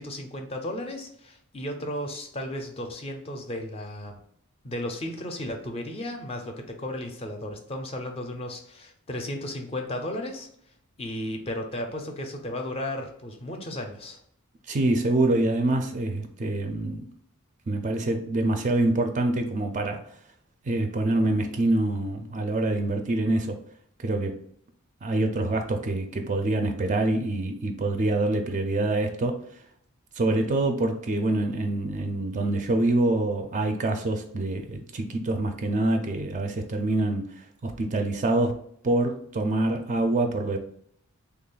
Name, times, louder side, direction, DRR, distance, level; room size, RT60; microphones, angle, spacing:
voice 1, 0.0-4.2 4.6-10.5 11.0-14.2, left 1 dB, 25° left, 4 dB, 0.4 m, -34 dB
voice 2, 14.7-17.0 17.7-20.0 20.6-23.6 24.0-24.4 25.0-29.4 30.2-38.6 38.8-40.6, right 2 dB, 35° right, 5 dB, 0.4 m, -25 dB
3.4 x 2.3 x 3.8 m, 0.66 s
head